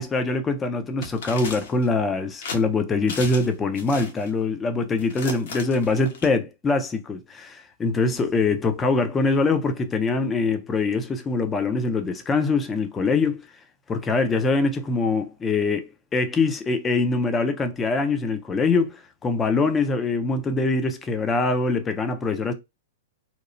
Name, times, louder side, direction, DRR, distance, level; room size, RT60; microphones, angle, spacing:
voice 1, 0.0-13.5 13.9-22.5, left 3 dB, 15° left, 0.4 m, -23 dB
sound 1, 1.0-1.9 2.4-2.6 3.1-3.5 3.8-4.3 5.0-6.3, left 4 dB, 65° left, 0.9 m, -35 dB
2.9 x 2.0 x 2.5 m
hypercardioid pair, 155°, 0 cm